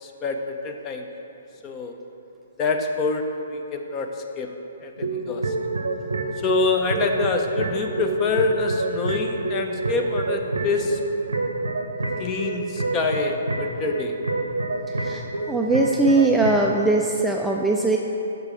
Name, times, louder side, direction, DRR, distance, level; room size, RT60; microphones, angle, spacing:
voice 1, 0.0-1.0 1.6-2.0 2.6-4.1 4.4-4.5 4.8-5.5 6.4-11.0 12.2-14.1, left 4 dB, 25° left, 4 dB, 0.7 m, -26 dB
sound 1, 5.0-16.8, right 2 dB, 75° right, 0.7 m, -28 dB
voice 2, 15.5-18.0, right 2 dB, 5° right, -1 dB, 0.4 m, -20 dB
6.8 x 5.2 x 5.6 m, 2.8 s
figure-of-eight pair, 125°, 0 cm